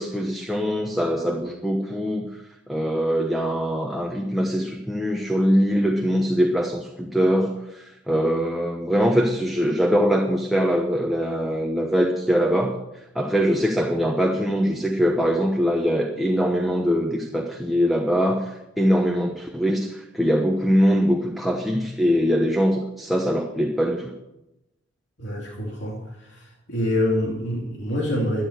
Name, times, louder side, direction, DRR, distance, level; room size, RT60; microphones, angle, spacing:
voice 1, 0.0-24.1, equal, ahead, 1 dB, 1.0 m, -22 dB
voice 2, 25.2-26.0 26.7-28.5, left 1 dB, 65° left, -2 dB, 2.8 m, -25 dB
13.5 x 10.5 x 6.6 m, 0.92 s
head